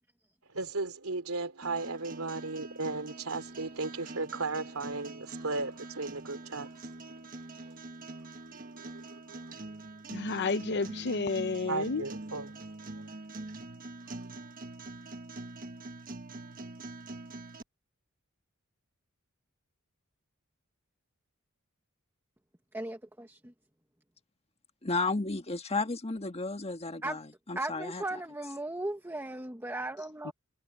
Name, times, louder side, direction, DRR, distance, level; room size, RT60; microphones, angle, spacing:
voice 1, 0.5-7.7 8.5-9.5 11.6-13.1, right 3 dB, 85° right, 2.9 m, -36 dB
sound 1, 1.6-17.6, right 2 dB, 40° right, 1.4 m, -44 dB
voice 2, 10.1-12.0 30.3-30.4, left 4 dB, 55° left, 0.7 m, -31 dB
voice 3, 22.7-23.5 27.0-27.2 27.5-30.3, right 2 dB, 10° right, 1.5 m, -37 dB
voice 4, 24.8-27.2 27.5-28.0, left 3 dB, 30° left, 1.5 m, -33 dB
head